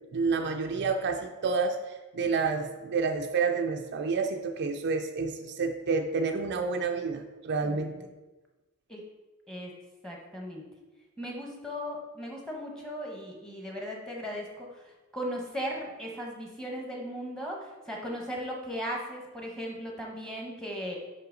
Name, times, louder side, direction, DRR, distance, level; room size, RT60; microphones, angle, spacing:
voice 1, 0.0-8.1, right 4 dB, 50° right, 5 dB, 0.4 m, -29 dB
voice 2, 10.0-10.6 11.2-14.8 15.1-21.0, equal, 5° left, -1 dB, 1.0 m, -37 dB
5.7 x 5.4 x 3.8 m, 1.2 s
head